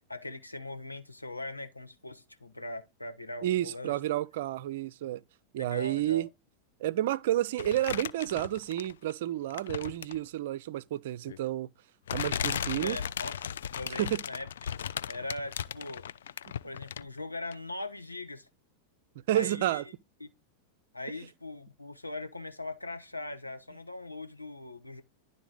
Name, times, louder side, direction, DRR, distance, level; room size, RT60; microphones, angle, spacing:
voice 1, 0.1-4.0 5.6-6.3 12.8-13.4 13.7-14.7 15.1-16.1 16.6-18.5 19.3-19.8 20.2-20.3 20.9-25.0, left 2 dB, 85° left, 1.0 m, -40 dB
voice 2, 3.4-5.2 5.5-6.3 6.8-11.7 12.1-13.0 14.0-14.2 19.3-19.8, right 13 dB, 55° right, 0.4 m, -30 dB
sound 1, 7.6-9.1 9.5-10.3 11.3-11.4 12.1-17.2 17.5-17.6, left 9 dB, 65° left, 0.3 m, -36 dB
11.0 x 3.9 x 3.8 m
figure-of-eight pair, 90°, 0 cm